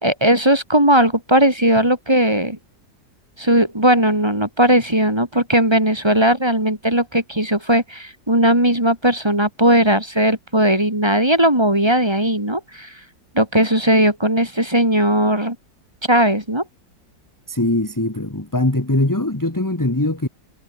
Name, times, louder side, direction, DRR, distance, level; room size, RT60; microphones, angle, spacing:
voice 1, 0.0-2.6 3.4-12.9 13.3-15.6 16.1-16.6, right 1 dB, 15° right, 3.9 m, -17 dB
voice 2, 17.5-20.3, left 1 dB, 10° left, 2.0 m, -21 dB
omnidirectional pair, 2.0 m